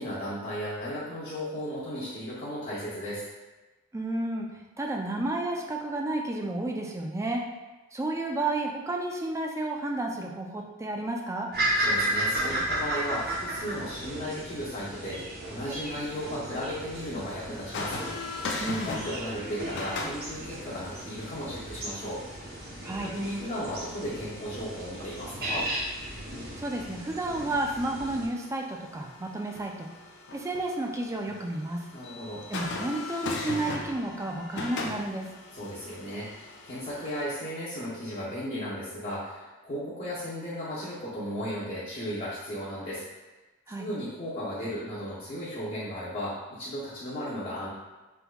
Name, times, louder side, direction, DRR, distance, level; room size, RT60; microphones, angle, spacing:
voice 1, 0.0-3.2 11.8-18.0 18.9-22.5 23.0-25.7 31.9-32.4 35.5-43.0 43.8-47.7, equal, 40° left, -11 dB, 0.8 m, -35 dB
voice 2, 3.9-4.5 4.8-7.4 7.9-11.5 18.6-18.9 22.8-23.1 26.6-29.9 30.3-31.8 32.5-35.3 43.7-43.9, right 2 dB, 15° right, 1 dB, 0.3 m, -31 dB
sound 1, 11.5-28.3, right 1 dB, 50° right, 0.7 m, -34 dB
sound 2, 17.5-37.2, left 3 dB, 55° left, 0.4 m, -40 dB
3.5 x 2.9 x 2.2 m, 1.1 s
head